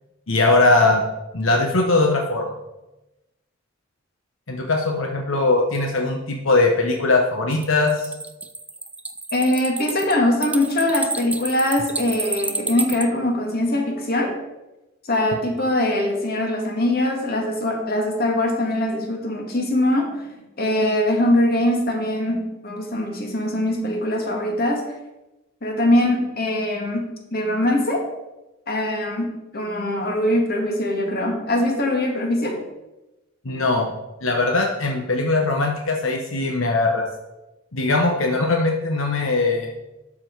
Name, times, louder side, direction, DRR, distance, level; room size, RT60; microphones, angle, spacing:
voice 1, 0.3-1.0 1.3-2.5 4.5-8.1 33.4-33.9 34.2-37.1 37.7-39.7, left 2 dB, 80° left, 2 dB, 1.1 m, -20 dB
sound 1, 7.5-13.1, right 3 dB, 5° right, 0.4 m, -30 dB
voice 2, 9.3-14.3 15.0-20.3 20.6-24.8 25.6-28.0 28.7-32.6, left 1 dB, 50° left, 2 dB, 1.9 m, -22 dB
11.5 x 6.1 x 4.7 m, 1.0 s
head